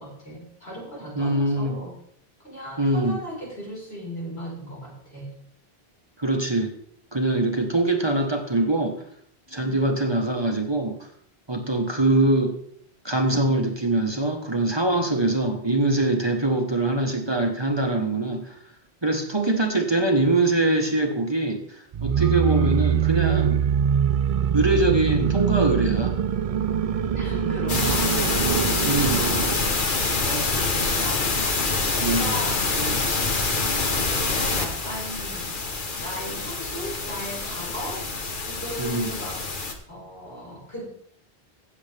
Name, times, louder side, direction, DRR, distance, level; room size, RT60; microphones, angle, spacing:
voice 1, 0.0-2.0 2.4-5.3 9.5-9.9 27.2-28.1 28.7-31.7 32.0-33.1 34.2-35.5 36.0-38.0 38.4-39.4 39.9-40.9, equal, 85° left, -4 dB, 5.2 m, -37 dB
voice 2, 1.1-1.8 2.8-3.2 6.2-6.7 7.1-9.0 9.5-11.1 11.5-12.5 13.0-18.6 19.0-23.6 24.5-26.1 28.8-29.3 32.0-32.4 38.8-39.1, right 2 dB, 25° right, 3 dB, 1.3 m, -23 dB
sound 1, 21.9-29.6, right 8 dB, 50° right, 0.4 m, -23 dB
sound 2, 27.7-39.7, left 3 dB, 55° left, 1.4 m, -26 dB
16.5 x 7.4 x 3.4 m, 0.63 s
omnidirectional pair, 1.0 m